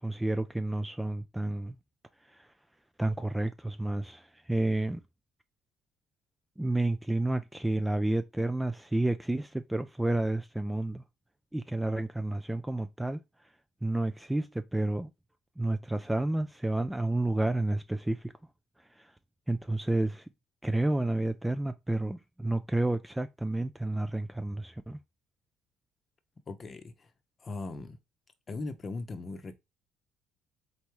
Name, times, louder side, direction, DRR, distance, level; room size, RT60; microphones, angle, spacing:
voice 1, 0.0-1.8 2.3-2.5 3.0-5.0 6.6-11.0 11.5-13.2 13.8-15.1 15.6-18.3 19.0-19.1 19.5-20.2 20.6-25.0, right 2 dB, 5° right, 0.3 m, -30 dB
voice 2, 26.5-27.1 27.4-28.0 28.5-29.6, left 3 dB, 30° left, 0.8 m, -39 dB
4.1 x 3.4 x 2.9 m
cardioid pair, 105°, 0 cm